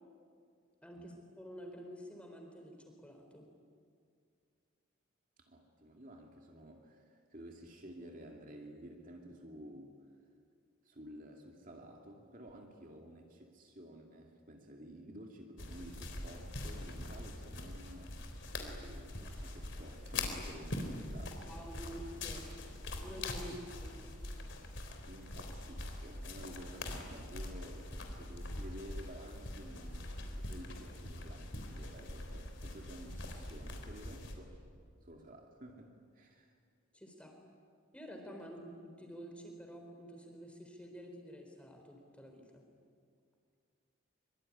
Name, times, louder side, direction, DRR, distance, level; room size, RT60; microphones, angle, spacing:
voice 1, 0.8-3.5 21.5-22.5 23.0-24.2 36.9-37.3 37.9-42.6, equal, 5° left, 3 dB, 4.1 m, -49 dB
voice 2, 5.4-9.9 10.8-18.2 18.5-21.5 25.0-34.6 35.0-36.5, right 1 dB, 40° right, 1 dB, 2.5 m, -52 dB
sound 1, 15.6-34.3, left 2 dB, 60° left, 3.7 m, -43 dB
24.5 x 24.5 x 9.9 m, 2.2 s
head